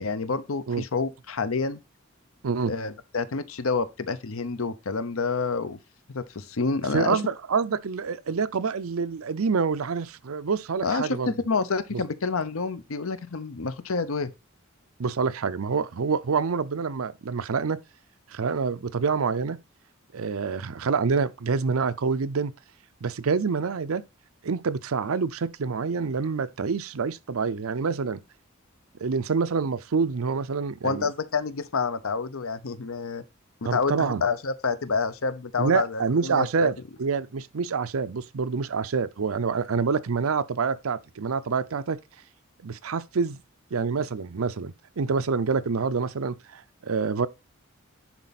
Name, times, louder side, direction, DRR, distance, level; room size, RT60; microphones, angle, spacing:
voice 1, 0.0-1.8 2.7-5.8 6.1-7.2 10.8-14.3 30.8-33.2 33.6-36.7, left 4 dB, 80° left, 0.8 m, -28 dB
voice 2, 6.9-11.3 11.9-12.0 15.0-17.8 18.3-19.6 20.1-22.5 23.0-24.0 24.4-28.2 29.0-31.1 33.6-34.2 35.6-42.0 42.6-43.4 43.7-47.3, right 5 dB, 85° right, 0.6 m, -27 dB
10.5 x 4.2 x 4.1 m
head